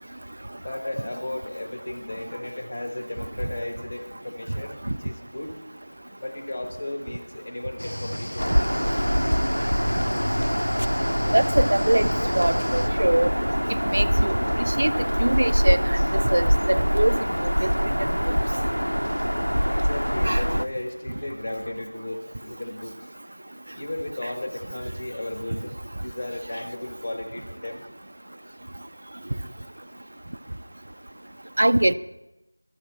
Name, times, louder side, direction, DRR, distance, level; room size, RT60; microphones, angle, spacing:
voice 1, 0.6-5.5 6.2-8.8 19.7-22.9 23.7-27.9, left 1 dB, 20° left, 1.3 m, -35 dB
Cricket / Waves surf, 7.8-12.9, equal, 80° left, 0.6 m, -32 dB
Bird vocalization bird call bird song, 8.4-20.7, equal, 90° right, 0.5 m, -24 dB
voice 2, 11.3-13.3 13.8-18.4 20.2-20.4 31.6-31.9, right 1 dB, 40° right, 0.4 m, -24 dB
13.0 x 8.9 x 7.5 m
figure-of-eight pair, 175°, 0 cm